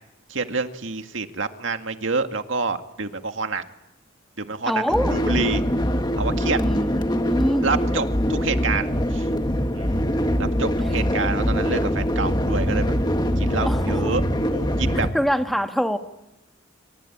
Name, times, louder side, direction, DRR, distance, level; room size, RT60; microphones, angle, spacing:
voice 1, 0.3-3.6 4.4-5.6 6.2-6.6 7.6-9.3 9.7-10.0 10.4-12.9 13.4-15.1, right 4 dB, 75° right, 6 dB, 2.0 m, -27 dB
voice 2, 4.7-5.1 6.5-7.7 13.6-14.1 15.1-16.0, equal, ahead, 5 dB, 1.8 m, -24 dB
sound 1, 4.9-15.1, equal, 20° left, 1.8 m, -23 dB
27.0 x 24.0 x 8.7 m, 0.94 s
head